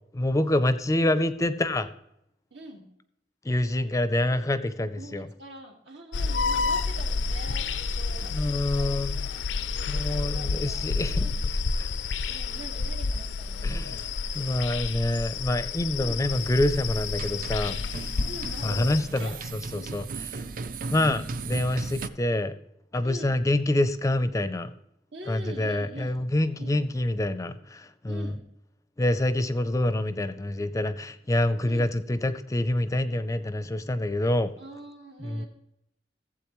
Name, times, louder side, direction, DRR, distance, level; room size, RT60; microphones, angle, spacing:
voice 1, 0.1-1.9 3.4-5.3 8.3-9.1 9.9-11.3 11.8-11.9 13.6-14.1 14.3-17.8 18.6-19.4 19.7-20.1 20.3-20.4 20.9-22.5 22.9-24.7 25.3-28.3 29.0-34.5 35.2-35.4, left 1 dB, 20° left, 0.4 m, -26 dB
voice 2, 2.5-2.9 5.0-11.4 12.2-13.7 16.0-16.2 18.3-19.4 19.7-20.0 23.0-23.4 25.1-26.3 26.6-26.8 28.1-28.4 31.6-31.9 34.6-35.5, right 1 dB, 90° right, 1.9 m, -44 dB
sound 1, 6.1-19.0, left 4 dB, 85° left, 0.5 m, -30 dB
sound 2, 16.3-22.1, right 4 dB, 50° right, 0.4 m, -37 dB
15.0 x 7.8 x 3.0 m
head